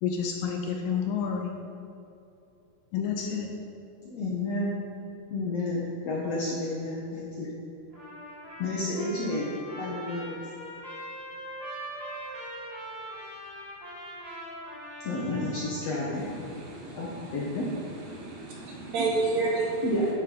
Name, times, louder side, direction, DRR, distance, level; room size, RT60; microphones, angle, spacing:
voice 1, 0.0-1.5 2.9-3.5, left 7 dB, 80° left, 3 dB, 2.3 m, -29 dB
voice 2, 4.0-4.8 5.3-7.5 8.6-10.4 15.0-16.3 16.9-17.7 19.8-20.1, left 2 dB, 60° left, -5 dB, 1.7 m, -31 dB
Trumpet, 7.9-16.0, right 1 dB, 15° right, 1.7 m, -41 dB
voice 3, 16.3-17.6 18.1-19.8, right 3 dB, 70° right, -3 dB, 3.4 m, -31 dB
9.7 x 9.3 x 4.0 m, 2.7 s
omnidirectional pair, 4.3 m